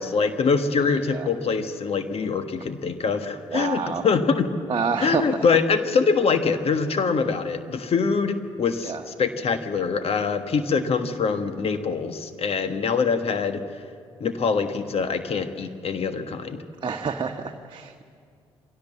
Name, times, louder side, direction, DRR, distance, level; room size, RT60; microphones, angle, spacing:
voice 1, 0.0-4.5 5.0-13.6 14.2-16.6, left 5 dB, 50° left, 9 dB, 1.4 m, -24 dB
voice 2, 3.5-4.0 4.7-5.2 8.8-9.0 16.8-18.0, right 5 dB, 40° right, 3 dB, 1.2 m, -28 dB
24.0 x 17.0 x 7.3 m, 2.2 s
hypercardioid pair, 50°, 13 cm